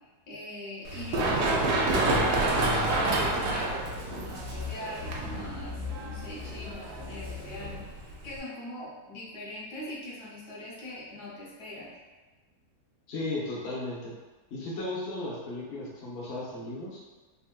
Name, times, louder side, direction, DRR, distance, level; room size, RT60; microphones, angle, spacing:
voice 1, 0.3-11.9, left 1 dB, 80° left, -7 dB, 1.4 m, -41 dB
Run, 0.8-8.4, right 2 dB, 75° right, 1.1 m, -29 dB
voice 2, 13.1-14.1 14.5-17.0, left 2 dB, 50° left, -5 dB, 0.8 m, -35 dB
3.4 x 2.6 x 2.2 m, 1.3 s
omnidirectional pair, 1.7 m